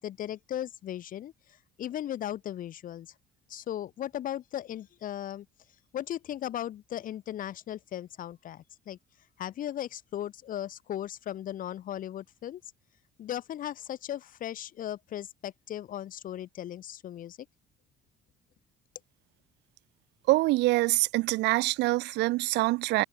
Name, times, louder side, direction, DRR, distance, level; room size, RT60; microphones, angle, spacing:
voice 1, 0.0-1.3 1.8-3.1 3.5-5.5 5.9-9.0 9.4-12.6 13.2-17.4, left 11 dB, 50° left, 4.5 m, -37 dB
voice 2, 20.3-23.0, right 20 dB, 90° right, 3.5 m, -25 dB
cardioid pair, 145°, 17 cm